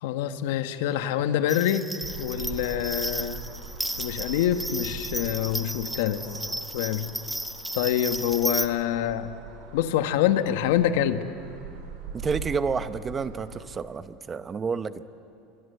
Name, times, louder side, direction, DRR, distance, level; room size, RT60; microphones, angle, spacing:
voice 1, 0.0-1.9 2.2-3.4 4.0-6.2 6.7-7.1 7.7-9.3 9.7-11.2, left 11 dB, 80° left, 9 dB, 1.4 m, -26 dB
sound 1, 1.5-8.7, right 1 dB, 5° right, 1.1 m, -34 dB
sound 2, 2.0-13.6, right 5 dB, 75° right, 4.2 m, -42 dB
voice 2, 12.1-15.1, right 5 dB, 20° right, 12 dB, 0.9 m, -30 dB
28.5 x 24.0 x 8.0 m, 2.7 s
supercardioid pair, 130°, 0 cm